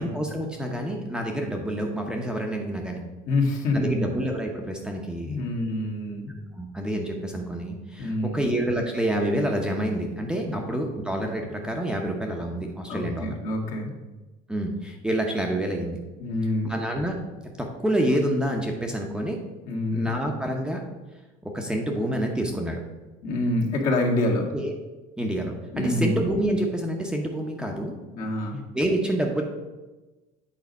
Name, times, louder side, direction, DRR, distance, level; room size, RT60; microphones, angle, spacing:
voice 1, 0.0-3.0 3.7-5.5 6.5-13.3 14.5-16.0 16.6-17.2 17.6-19.4 19.9-20.8 21.4-22.8 24.5-24.7 25.2-28.0 28.7-29.4, right 1 dB, 5° right, 1 dB, 0.8 m, -28 dB
voice 2, 3.3-4.0 5.3-6.3 8.0-8.4 10.4-10.6 12.9-13.9 16.2-16.8 19.7-20.1 23.2-24.5 25.7-26.1 28.1-28.6, left 2 dB, 55° left, -1 dB, 1.7 m, -26 dB
8.4 x 4.0 x 5.3 m, 1.1 s
cardioid pair, 135°, 16 cm